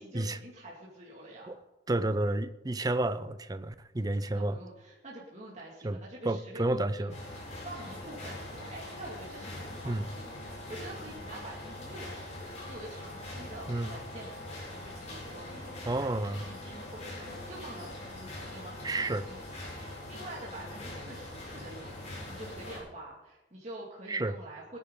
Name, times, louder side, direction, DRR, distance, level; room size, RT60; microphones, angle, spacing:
voice 1, 0.0-1.5 4.3-16.2 16.4-24.8, right 1 dB, 40° right, 2.3 m, -47 dB
voice 2, 1.9-4.6 5.8-6.0 6.3-7.1 9.8-10.0 13.7-13.9 15.9-16.4 18.8-19.2 24.1-24.4, right 2 dB, 20° right, 0.5 m, -30 dB
sound 1, 7.1-22.8, left 1 dB, 40° left, 5.8 m, -42 dB
19.5 x 10.0 x 3.9 m
head